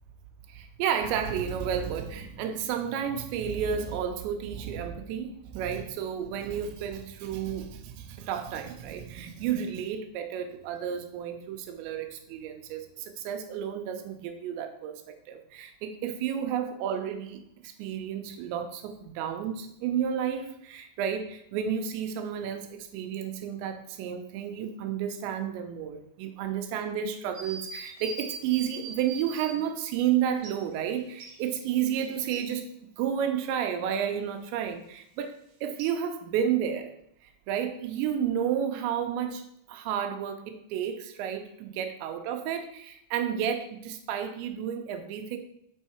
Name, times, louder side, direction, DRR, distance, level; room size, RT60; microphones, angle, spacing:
voice 1, 0.5-32.7 33.0-36.9 37.2-45.4, right 8 dB, 85° right, 6 dB, 3.0 m, -31 dB
sound 1, 27.3-29.6 30.4-30.5 31.2-32.4 35.8-35.9, right 4 dB, 70° right, 2.0 m, -41 dB
7.1 x 4.6 x 4.3 m, 0.73 s
omnidirectional pair, 5.1 m